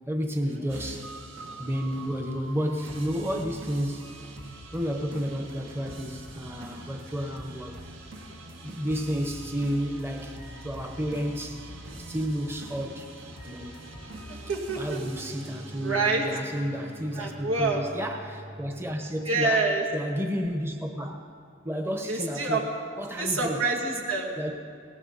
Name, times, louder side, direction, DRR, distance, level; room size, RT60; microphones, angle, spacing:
voice 1, 0.1-1.1 1.6-4.1 4.7-7.9 8.6-11.6 12.0-13.1 13.4-13.9 14.8-19.7 19.9-21.3 21.6-22.7 23.0-23.6 24.4-24.5, equal, 10° right, 3 dB, 0.9 m, -31 dB
sound 1, 0.7-18.7, right 1 dB, 70° right, 1.8 m, -43 dB
voice 2, 14.3-15.0 15.8-16.2 17.1-17.8 19.3-19.9 22.1-22.6 23.2-24.3, right 3 dB, 90° right, -1 dB, 2.3 m, -26 dB
20.0 x 17.5 x 4.1 m, 2.3 s
head